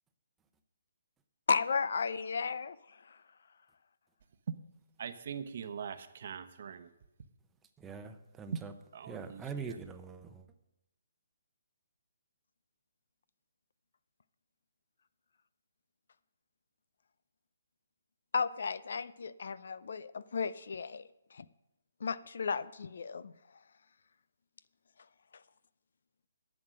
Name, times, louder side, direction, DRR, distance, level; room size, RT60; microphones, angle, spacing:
voice 1, 1.5-3.2 18.3-21.5 22.0-23.3, left 5 dB, 65° left, 0.5 m, -34 dB
voice 2, 5.0-6.9 8.5-8.6 8.9-9.8, right 7 dB, 55° right, 0.9 m, -41 dB
voice 3, 7.8-8.7 9.1-10.5, right 5 dB, 10° right, 0.8 m, -43 dB
11.5 x 7.8 x 6.4 m
hypercardioid pair, 155°, 0 cm